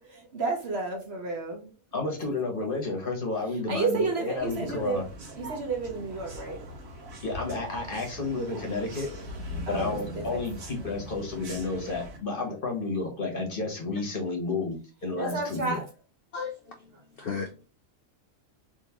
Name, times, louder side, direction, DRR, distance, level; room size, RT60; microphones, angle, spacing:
voice 1, 0.1-1.7 3.7-5.0 5.4-6.6 9.7-10.4 15.2-15.8, right 3 dB, 50° right, 1.0 m, -31 dB
voice 2, 1.9-5.0 7.2-9.1 9.7-15.8, left 3 dB, 45° left, 1.0 m, -31 dB
sound 1, 4.4-12.2, equal, 75° right, 1.5 m, -41 dB
voice 3, 15.2-15.6 16.3-17.6, left 5 dB, 65° left, 0.6 m, -37 dB
3.7 x 2.7 x 2.8 m
omnidirectional pair, 1.5 m